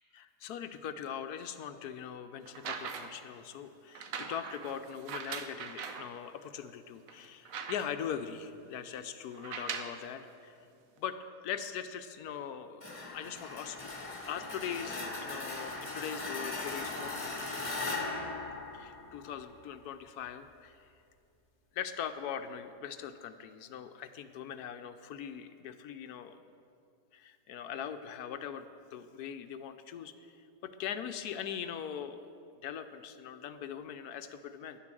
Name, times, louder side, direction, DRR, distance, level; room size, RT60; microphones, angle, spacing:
voice 1, 0.1-10.6 11.0-11.2 11.4-13.9 14.2-17.5 18.7-20.9 21.7-26.4 27.1-30.3 30.6-32.3 32.6-34.8, left 8 dB, 70° left, 9 dB, 1.1 m, -41 dB
sound 1, 2.5-3.3 3.9-6.1 6.7-6.8 7.1-8.1 9.3-10.0 11.0-11.1, right 6 dB, 60° right, 1.1 m, -41 dB
sound 2, 12.8-19.5, left 3 dB, 20° left, 1.2 m, -39 dB
10.5 x 9.7 x 7.5 m, 2.5 s
omnidirectional pair, 1.7 m